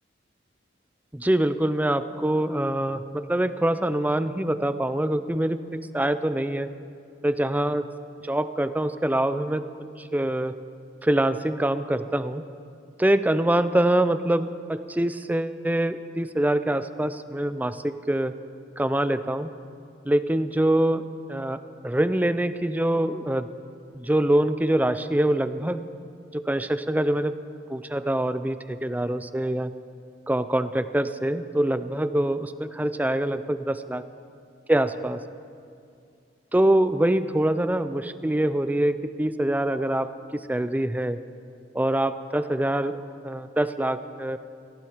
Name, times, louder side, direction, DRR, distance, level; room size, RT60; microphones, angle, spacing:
voice 1, 1.1-6.7 7.2-7.8 8.2-9.6 10.0-10.5 11.0-12.4 13.0-18.3 18.8-19.5 20.1-21.0 21.3-23.5 23.9-25.9 26.3-27.4 27.7-29.7 30.3-34.0 34.7-35.2 36.5-41.2 41.7-43.0 43.2-44.4, right 1 dB, 10° right, 12 dB, 0.5 m, -24 dB
18.5 x 15.5 x 5.0 m, 2.4 s
head